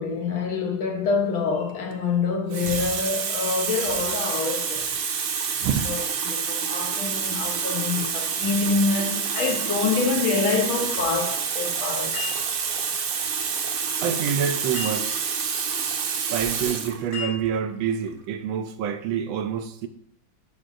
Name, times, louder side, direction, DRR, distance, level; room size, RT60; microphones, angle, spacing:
voice 1, 0.0-4.9 5.9-6.0 6.3-12.2, left 4 dB, 80° left, 1.9 m, -26 dB
Water tap faucet, 1.7-1.9 2.5-17.0 17.9-18.1, right 6 dB, 60° right, 0.9 m, -28 dB
sound 1, 9.4-10.3 12.1-12.9 14.7-15.4 17.1-17.9, left 6 dB, 55° left, 4.1 m, -37 dB
voice 2, 14.0-15.2 16.3-19.9, right 8 dB, 80° right, 1.4 m, -27 dB
11.5 x 5.2 x 2.6 m
omnidirectional pair, 2.2 m